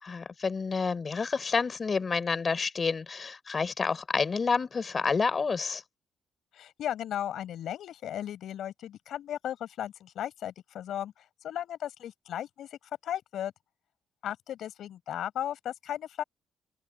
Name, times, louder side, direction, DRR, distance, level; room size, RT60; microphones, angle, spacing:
voice 1, 0.0-5.8, left 5 dB, 35° left, 4.0 m, -29 dB
voice 2, 6.5-11.1 11.4-13.5 14.2-16.2, left 11 dB, 75° left, 6.0 m, -36 dB
cardioid pair, 90°, 0 cm